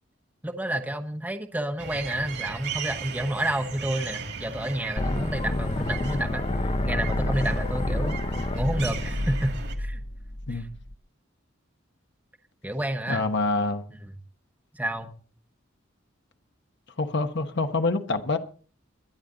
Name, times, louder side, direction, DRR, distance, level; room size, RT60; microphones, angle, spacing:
voice 1, 0.4-8.2 8.5-10.0 10.5-10.7 12.6-13.2 14.0-14.1 14.7-15.1, right 1 dB, 10° right, 1.0 m, -30 dB
sound 1, 1.8-9.8, right 5 dB, 60° right, 2.3 m, -37 dB
sound 2, 5.0-10.9, left 1 dB, 30° left, 0.7 m, -29 dB
voice 2, 13.1-13.8 17.0-18.4, left 3 dB, 65° left, 1.2 m, -26 dB
21.5 x 10.5 x 3.9 m
head